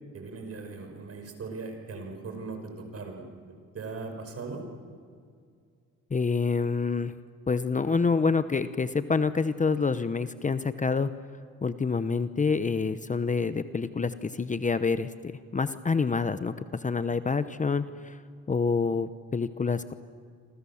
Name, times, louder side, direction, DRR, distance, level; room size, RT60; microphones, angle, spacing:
voice 1, 0.1-3.3 3.7-4.6, right 4 dB, 50° right, 5 dB, 5.6 m, -39 dB
voice 2, 6.1-7.1 7.5-11.1 11.6-15.1 15.5-18.2 18.5-19.9, left 4 dB, 25° left, 12 dB, 0.9 m, -27 dB
27.0 x 26.0 x 7.3 m, 2.2 s
cardioid pair, 90°, 30 cm